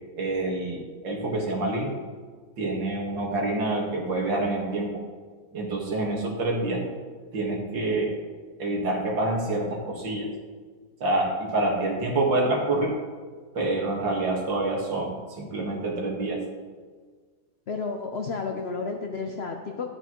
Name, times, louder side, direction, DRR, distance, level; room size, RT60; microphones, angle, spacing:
voice 1, 0.2-2.0 2.6-5.0 5.5-6.9 7.3-8.2 8.6-10.3 11.0-13.0 13.5-16.4, right 2 dB, 85° right, -1 dB, 2.4 m, -27 dB
voice 2, 17.7-19.9, left 4 dB, 75° left, 3 dB, 0.5 m, -31 dB
11.0 x 9.1 x 3.0 m, 1.5 s
omnidirectional pair, 2.0 m